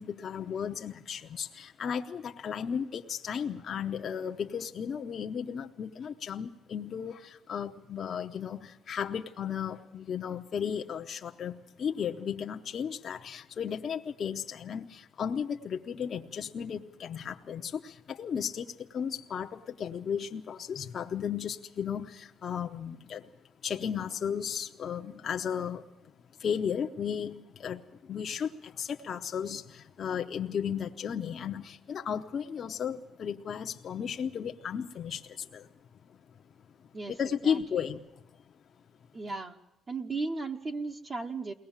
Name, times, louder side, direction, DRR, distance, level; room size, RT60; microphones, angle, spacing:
voice 1, 0.0-23.3 23.6-25.8 26.4-35.7 36.1-36.2 37.1-38.1, left 7 dB, 45° left, 4 dB, 0.8 m, -35 dB
voice 2, 37.4-37.9 39.1-39.6 39.9-41.5, right 3 dB, 30° right, 2 dB, 1.0 m, -36 dB
22.0 x 18.5 x 7.4 m, 0.88 s
cardioid pair, 130°, 0 cm